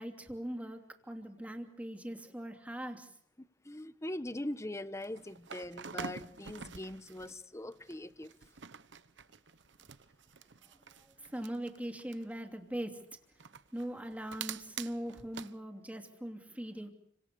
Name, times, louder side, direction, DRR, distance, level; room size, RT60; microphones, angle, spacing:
voice 1, 0.0-3.1 11.2-13.0 13.7-16.9, right 1 dB, 10° right, 5 dB, 2.9 m, -41 dB
voice 2, 3.4-8.3, left 1 dB, 15° left, 13 dB, 1.1 m, -41 dB
sound 1, 5.0-7.4 7.7-12.3 13.4-15.5, right 6 dB, 75° right, 1.0 m, -47 dB
29.0 x 25.5 x 6.9 m, 0.68 s
head